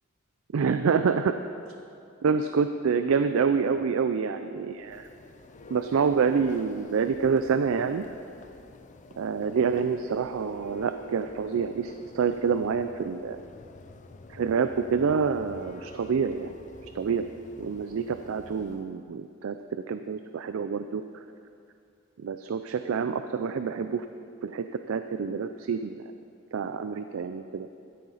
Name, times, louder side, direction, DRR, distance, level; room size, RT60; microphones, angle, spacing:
voice 1, 0.5-1.4 2.2-5.1 5.7-8.0 9.2-13.4 14.3-16.5 16.9-17.3 17.6-21.0 22.2-24.1 24.4-26.0 26.5-27.7, right 6 dB, 85° right, 9 dB, 0.4 m, -27 dB
Church bell, 4.7-19.0, left 2 dB, 35° left, 0.5 m, -48 dB
13.5 x 9.8 x 4.0 m, 2.5 s
head